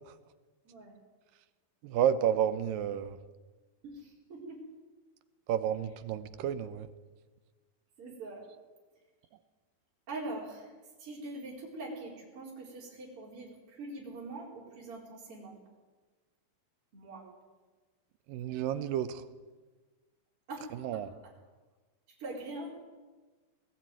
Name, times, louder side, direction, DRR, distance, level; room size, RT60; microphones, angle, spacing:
voice 1, 1.8-3.2 5.5-6.9 18.3-19.3 20.8-21.1, right 9 dB, 75° right, 12 dB, 2.3 m, -31 dB
voice 2, 3.8-4.6 8.0-8.5 10.1-10.7 11.0-15.6 16.9-17.3 20.5-20.7 22.1-22.7, right 2 dB, 35° right, -5 dB, 5.0 m, -43 dB
19.5 x 15.5 x 9.2 m, 1.3 s
omnidirectional pair, 4.4 m